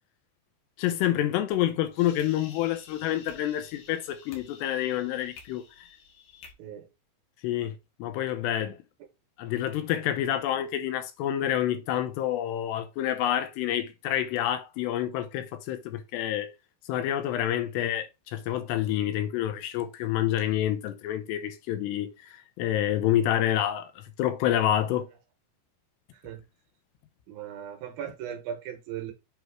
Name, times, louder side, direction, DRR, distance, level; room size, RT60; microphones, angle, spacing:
voice 1, 0.8-5.6 7.4-7.7 8.0-8.8 9.4-16.5 16.9-25.1, left 12 dB, 85° left, 2.7 m, -28 dB
sound 1, 1.5-6.5, left 5 dB, 60° left, 2.9 m, -51 dB
voice 2, 26.1-26.4 27.3-29.1, right 9 dB, 70° right, 2.5 m, -38 dB
7.9 x 3.0 x 4.6 m
omnidirectional pair, 5.1 m